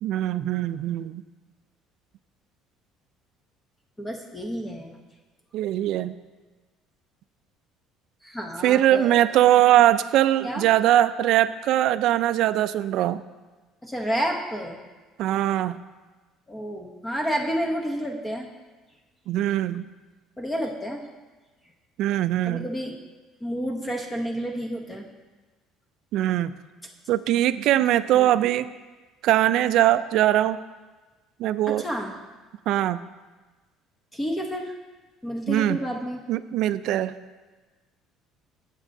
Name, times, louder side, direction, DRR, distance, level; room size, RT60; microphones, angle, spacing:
voice 1, 0.0-1.2 5.5-6.1 8.6-13.2 15.2-15.8 19.3-19.9 22.0-22.7 26.1-26.5 27.1-28.7 29.2-30.6 31.4-31.8 32.7-33.0 35.5-35.8 36.3-37.2, right 13 dB, 60° right, 14 dB, 0.3 m, -21 dB
voice 2, 4.0-5.0 8.2-9.1 10.4-10.7 13.8-14.8 16.5-18.5 20.4-21.0 22.4-23.0 23.4-25.1 28.1-28.3 31.7-32.2 34.1-34.7 35.2-36.2, equal, 10° left, 2 dB, 0.7 m, -30 dB
15.0 x 7.4 x 2.6 m, 1.3 s
cardioid pair, 145°, 0 cm